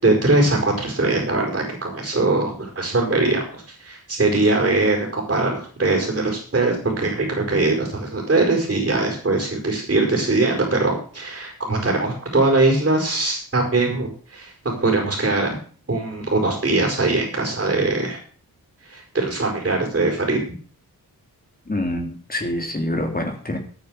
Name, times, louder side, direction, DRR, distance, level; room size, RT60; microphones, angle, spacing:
voice 1, 0.0-15.6 15.9-18.2 18.9-20.4, right 2 dB, 35° right, 1 dB, 5.2 m, -21 dB
voice 2, 21.7-23.6, left 1 dB, 25° left, 4 dB, 3.4 m, -26 dB
13.0 x 9.2 x 6.5 m, 0.43 s
wide cardioid pair, 100°, 36 cm